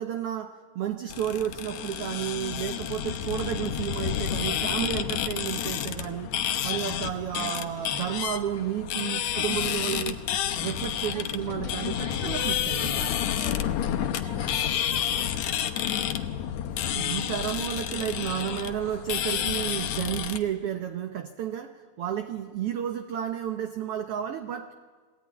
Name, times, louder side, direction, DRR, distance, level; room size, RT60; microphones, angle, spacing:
voice 1, 0.0-6.3 6.6-10.2 10.6-13.0 16.9-24.7, right 10 dB, 65° right, 7 dB, 1.5 m, -32 dB
sound 1, 1.1-20.4, left 10 dB, 70° left, 2.1 m, -30 dB
voice 2, 11.0-16.1, equal, 15° right, -1 dB, 1.9 m, -45 dB
22.0 x 17.0 x 9.6 m, 1.5 s
omnidirectional pair, 3.5 m